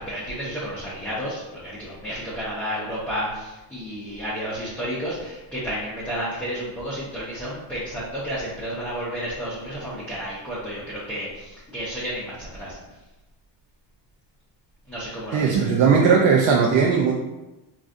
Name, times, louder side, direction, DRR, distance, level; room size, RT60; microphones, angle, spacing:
voice 1, 0.0-12.8 14.9-15.6, equal, 5° left, -9 dB, 0.7 m, -31 dB
voice 2, 15.3-17.2, right 6 dB, 70° right, -1 dB, 0.6 m, -18 dB
3.9 x 2.4 x 2.4 m, 1.0 s
cardioid pair, 120°, 48 cm